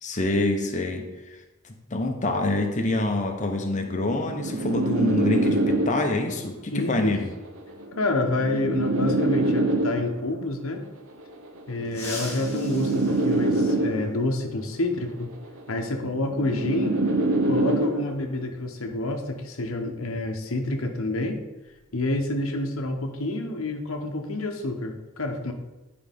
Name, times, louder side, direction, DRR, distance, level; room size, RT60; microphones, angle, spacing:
voice 1, 0.0-1.1 1.6-7.3, left 2 dB, 35° left, 3 dB, 1.0 m, -26 dB
sound 1, 3.9-6.3 7.3-10.3 11.3-14.3 15.3-18.3, right 2 dB, 70° right, 0.8 m, -25 dB
voice 2, 6.7-7.2 8.0-10.8 11.7-15.3 15.7-17.0 17.4-21.4 21.9-25.5, left 2 dB, 75° left, 4 dB, 1.0 m, -28 dB
sound 2, 11.8-14.3 15.9-16.0 17.2-17.3 19.0-19.1 19.5-19.7 20.2-22.4 22.6-22.9 23.3-23.7, left 2 dB, 10° left, 1.4 m, -42 dB
9.9 x 4.9 x 3.5 m, 1.1 s
head